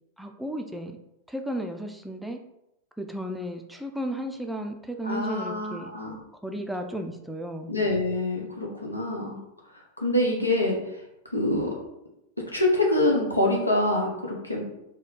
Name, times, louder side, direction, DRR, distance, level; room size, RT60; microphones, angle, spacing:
voice 1, 0.2-1.0 1.3-2.4 3.0-5.9 6.4-7.7, equal, ahead, 4 dB, 0.4 m, -34 dB
voice 2, 5.0-6.2 7.7-9.4 9.7-11.0 11.3-11.7 12.5-14.6, left 1 dB, 85° left, -1 dB, 0.9 m, -25 dB
4.2 x 2.2 x 3.9 m, 0.87 s
figure-of-eight pair, 90°, 0 cm